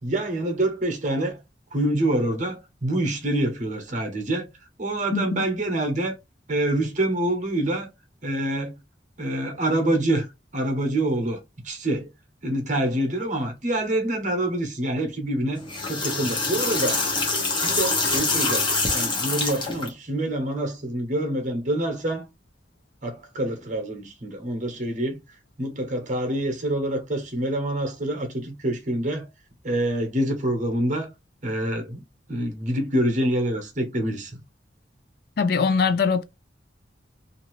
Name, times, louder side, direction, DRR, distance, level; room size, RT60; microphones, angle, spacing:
voice 1, 0.0-1.4 1.7-4.5 4.8-6.2 6.5-7.9 8.2-8.7 9.2-10.3 10.5-12.1 12.4-15.6 15.9-17.0 17.6-18.7 18.9-22.3 23.0-25.2 25.6-29.3 29.6-31.1 31.4-32.0 32.3-34.4, right 1 dB, 45° right, 0.9 m, -26 dB
voice 2, 5.1-5.4 35.4-36.2, left 5 dB, 60° left, 0.4 m, -22 dB
sound 1, 15.6-19.9, left 3 dB, 25° left, 0.9 m, -25 dB
2.7 x 2.6 x 3.0 m
head